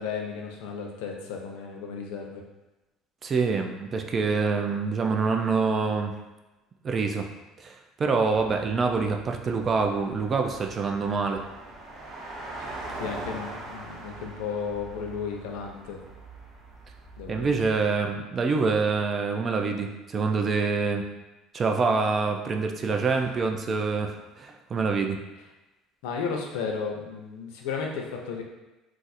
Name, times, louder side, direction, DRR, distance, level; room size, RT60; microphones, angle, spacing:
voice 1, 0.0-2.4 12.6-16.0 17.2-17.5 22.9-23.2 26.0-28.4, left 5 dB, 90° left, 1 dB, 0.5 m, -34 dB
voice 2, 3.2-6.1 6.8-7.3 7.6-11.4 17.3-21.0 21.5-25.2, right 4 dB, 30° right, 4 dB, 0.3 m, -26 dB
sound 1, 8.3-17.8, right 2 dB, 45° right, 1.2 m, -42 dB
2.4 x 2.4 x 4.0 m, 1.0 s
cardioid pair, 140°, 0 cm